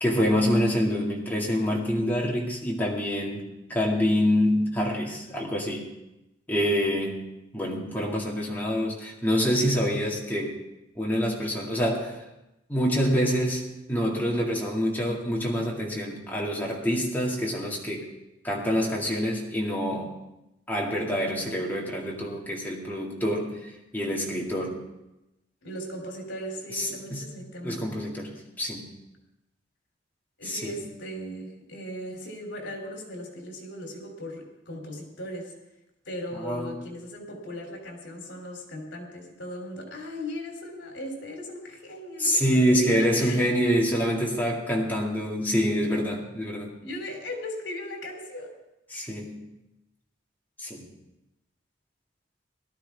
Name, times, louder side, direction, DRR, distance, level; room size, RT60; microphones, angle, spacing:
voice 1, 0.0-5.9 6.5-10.6 11.0-12.2 12.7-18.1 18.4-20.1 20.7-24.8 26.7-27.4 27.6-28.9 30.5-30.8 36.4-36.7 42.2-46.7 48.9-49.5 50.6-50.9, equal, 10° left, -3 dB, 2.2 m, -26 dB
voice 2, 25.6-27.9 30.4-35.5 36.0-43.5 46.8-48.5, left 1 dB, 70° left, 2 dB, 3.2 m, -38 dB
18.0 x 12.5 x 3.5 m, 0.93 s
head